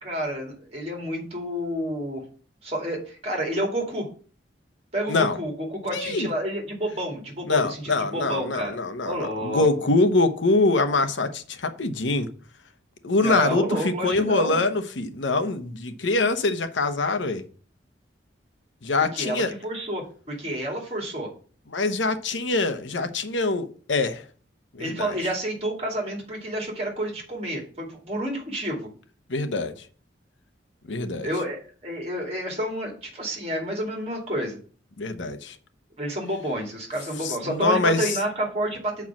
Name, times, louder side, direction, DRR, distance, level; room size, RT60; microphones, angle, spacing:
voice 1, 0.0-2.2 2.6-4.1 4.9-8.7 9.0-9.7 13.2-14.6 19.1-21.3 24.8-28.9 31.2-34.6 36.0-39.1, right 1 dB, 35° right, 2.4 m, -29 dB
voice 2, 5.9-6.3 7.4-12.3 13.0-17.4 18.8-19.5 21.7-24.2 24.7-25.2 29.3-29.8 30.9-31.3 35.0-35.6 37.2-38.2, left 3 dB, 80° left, 0.9 m, -24 dB
7.2 x 4.7 x 5.9 m
head